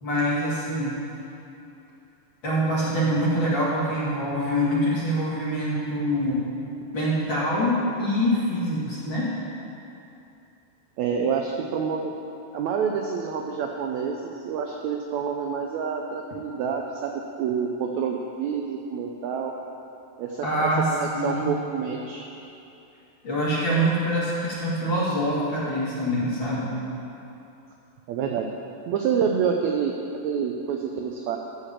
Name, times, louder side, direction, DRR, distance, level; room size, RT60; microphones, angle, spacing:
voice 1, 0.0-1.0 2.4-6.5 6.9-9.3 20.4-21.5 23.2-26.8, equal, 45° left, -7 dB, 1.9 m, -25 dB
voice 2, 11.0-12.1 12.5-14.2 14.4-19.5 20.2-22.3 28.1-28.5 28.9-29.9 30.2-31.4, right 6 dB, 80° right, 2 dB, 1.7 m, -27 dB
14.0 x 4.9 x 7.3 m, 2.8 s
omnidirectional pair, 3.9 m